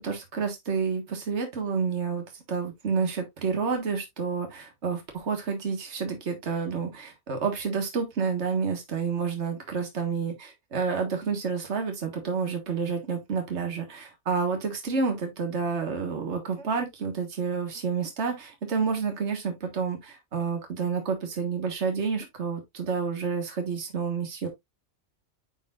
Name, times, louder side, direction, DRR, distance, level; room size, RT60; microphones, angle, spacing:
voice 1, 0.0-10.3 10.7-24.5, right 5 dB, 65° right, 1.8 m, -29 dB
9.8 x 4.2 x 2.4 m
omnidirectional pair, 1.2 m